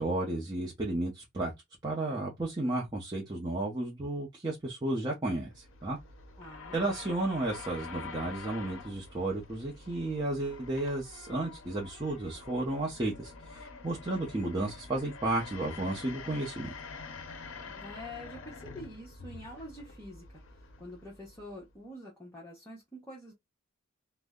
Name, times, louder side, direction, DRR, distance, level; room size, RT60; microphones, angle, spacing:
voice 1, 0.0-1.5 1.8-6.0 6.7-16.7, right 2 dB, 20° right, 0.6 m, -33 dB
sound 1, 5.4-21.8, left 4 dB, 65° left, 0.5 m, -47 dB
voice 2, 6.4-6.8 17.7-23.3, left 1 dB, 10° left, 0.8 m, -46 dB
2.6 x 2.1 x 3.4 m
head